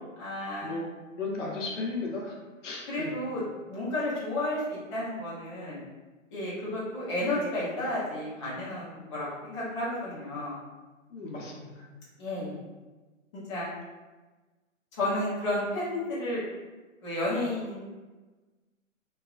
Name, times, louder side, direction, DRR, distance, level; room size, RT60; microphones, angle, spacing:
voice 1, 0.2-0.8 2.8-5.8 6.3-10.6 12.2-12.5 13.3-13.7 14.9-16.4 17.0-17.9, left 1 dB, 25° left, -9 dB, 0.6 m, -32 dB
voice 2, 1.2-2.3 2.6-3.1 11.1-11.7, left 3 dB, 65° left, -2 dB, 0.8 m, -34 dB
3.0 x 2.2 x 2.4 m, 1.2 s
hypercardioid pair, 145°, 40 cm